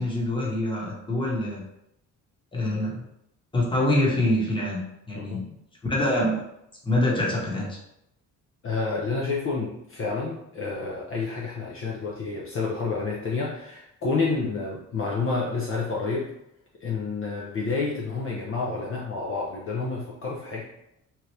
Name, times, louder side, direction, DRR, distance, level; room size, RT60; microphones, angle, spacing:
voice 1, 0.0-1.6 2.5-3.0 3.5-4.8 5.1-5.4 5.8-6.3 6.8-7.8, left 1 dB, 15° left, -3 dB, 1.0 m, -25 dB
voice 2, 8.6-16.3 16.8-20.6, left 4 dB, 45° left, -3 dB, 0.6 m, -29 dB
2.9 x 2.4 x 3.2 m, 0.81 s
cardioid pair, 90°, 30 cm